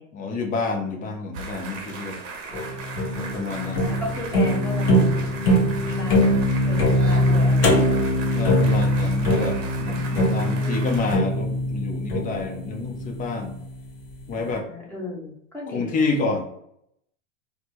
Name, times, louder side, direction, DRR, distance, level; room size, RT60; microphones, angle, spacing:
voice 1, 0.1-2.2 3.2-3.9 8.3-13.6 14.3-14.7 15.7-16.4, left 3 dB, 20° left, 4 dB, 0.6 m, -28 dB
sound 1, 1.3-11.2, right 4 dB, 40° right, 0.8 m, -37 dB
sound 2, 2.5-13.7, equal, 50° left, 1.1 m, -22 dB
voice 2, 3.6-5.3 5.9-6.4 6.6-8.1 9.8-11.1 14.3-16.1, left 2 dB, 5° left, -4 dB, 1.1 m, -36 dB
4.1 x 2.1 x 2.9 m, 0.75 s
hypercardioid pair, 105°, 38 cm